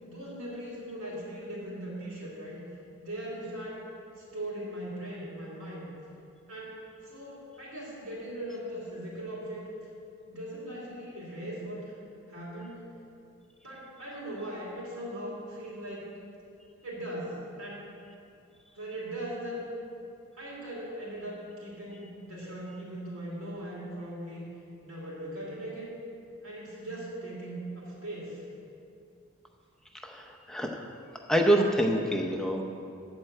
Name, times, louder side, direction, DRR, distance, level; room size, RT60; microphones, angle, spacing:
voice 1, 0.0-2.6 3.0-3.8 4.2-5.9 6.5-9.6 10.3-11.9 12.3-12.8 13.6-16.1 16.8-17.9 18.7-19.7 20.3-24.4 24.8-25.9 26.4-28.4, right 1 dB, 75° right, -7 dB, 2.9 m, -39 dB
voice 2, 30.0-30.9 31.3-32.6, right 1 dB, ahead, 1 dB, 0.7 m, -26 dB
13.0 x 4.4 x 7.8 m, 2.5 s
head